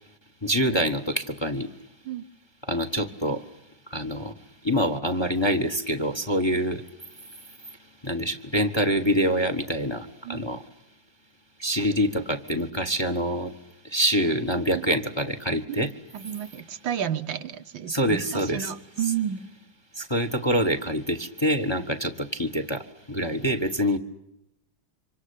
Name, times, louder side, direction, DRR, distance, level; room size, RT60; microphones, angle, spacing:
voice 1, 0.4-1.7 2.7-3.4 3.9-4.3 4.6-6.8 7.2-7.8 8.0-10.6 11.6-13.5 13.8-15.9 17.9-18.6 19.9-24.0, equal, 15° left, 10 dB, 1.3 m, -26 dB
voice 2, 15.7-19.5, right 9 dB, 80° right, 8 dB, 2.0 m, -32 dB
26.0 x 25.0 x 8.5 m, 0.85 s
omnidirectional pair, 2.1 m